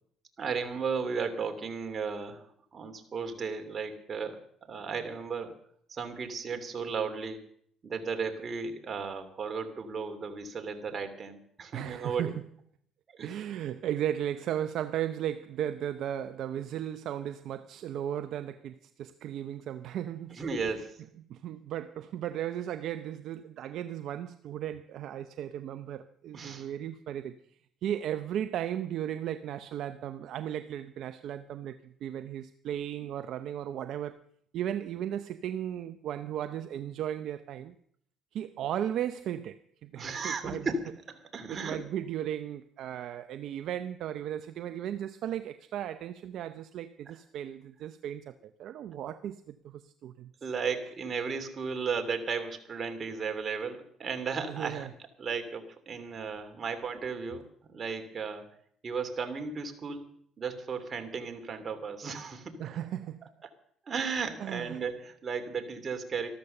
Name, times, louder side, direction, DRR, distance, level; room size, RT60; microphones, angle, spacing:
voice 1, 0.4-2.5 2.7-5.6 5.9-7.4 7.8-12.3 13.1-13.4 20.3-21.0 26.3-26.7 40.0-41.8 50.4-54.9 55.2-58.5 58.8-60.0 60.4-62.8 63.9-66.3, right 5 dB, 40° right, 2.9 m, -35 dB
voice 2, 11.7-12.3 13.2-20.4 21.2-27.4 27.8-34.2 34.5-37.7 38.3-40.7 41.5-50.3 54.5-54.9 62.6-63.3 64.4-64.8, right 10 dB, 65° right, 0.7 m, -36 dB
13.5 x 13.0 x 6.6 m
supercardioid pair, 80°, 0 cm